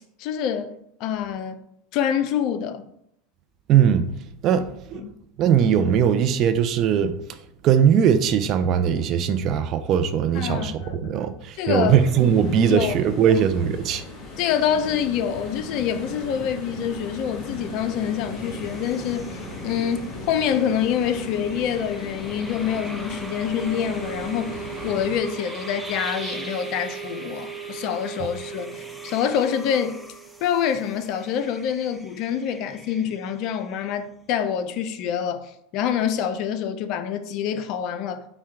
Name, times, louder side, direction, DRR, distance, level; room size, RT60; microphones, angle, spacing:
voice 1, 0.2-1.6 1.9-2.8 4.9-5.1 10.3-11.1 11.6-12.0 12.7-12.9 13.3-13.4 14.4-24.6 24.8-30.0 30.4-38.3, left 8 dB, 55° left, 0.4 m, -26 dB
voice 2, 3.7-4.1 4.4-5.0 5.4-7.2 7.6-14.0, right 8 dB, 45° right, 0.4 m, -20 dB
sound 1, 11.8-25.2, left 2 dB, 40° left, 1.6 m, -37 dB
sound 2, 17.8-34.1, right 1 dB, ahead, 0.6 m, -42 dB
sound 3, 19.2-31.5, right 6 dB, 30° right, 1.0 m, -40 dB
5.7 x 2.2 x 3.5 m
hypercardioid pair, 85°, 0 cm